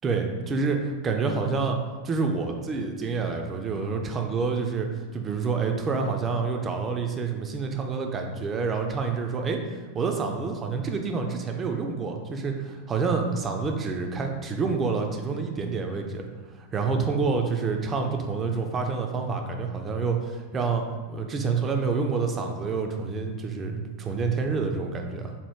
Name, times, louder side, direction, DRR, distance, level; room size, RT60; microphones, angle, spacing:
voice 1, 0.0-1.8 2.0-9.6 9.9-16.3 16.6-20.8 21.1-25.3, right 4 dB, 25° right, 3 dB, 0.4 m, -28 dB
4.2 x 2.2 x 3.5 m, 1.3 s
figure-of-eight pair, 90°, 0 cm